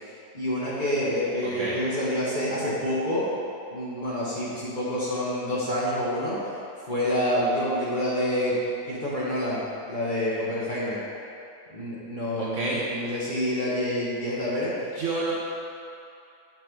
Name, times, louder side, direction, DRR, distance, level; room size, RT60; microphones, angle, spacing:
voice 1, 0.3-3.3 3.7-6.6 6.9-8.6 8.9-11.0 11.7-14.9, left 1 dB, 35° left, -9 dB, 1.1 m, -27 dB
voice 2, 1.4-1.8 12.4-12.8 14.9-15.3, right 3 dB, 60° right, -5 dB, 0.9 m, -29 dB
5.9 x 3.3 x 5.9 m, 2.6 s
omnidirectional pair, 1.8 m